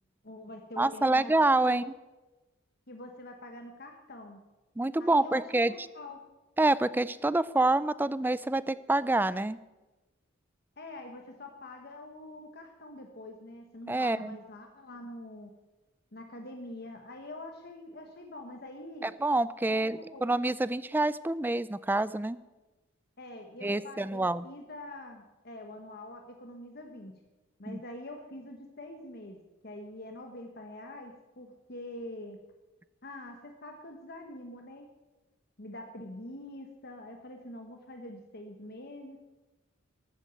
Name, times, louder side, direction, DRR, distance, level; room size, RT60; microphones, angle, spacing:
voice 1, 0.2-1.8 2.9-4.4 5.0-6.2 10.8-15.5 16.1-19.1 19.7-20.3 23.2-27.1 27.6-29.4 29.6-32.4 33.0-34.9 35.6-39.2, left 1 dB, 55° left, 4 dB, 1.3 m, -45 dB
voice 2, 0.8-1.8 4.8-5.7 6.6-9.6 13.9-14.4 19.0-22.4 23.6-24.5 27.7-27.8, right 2 dB, 10° right, 17 dB, 0.4 m, -27 dB
14.0 x 9.1 x 7.9 m, 1.1 s
head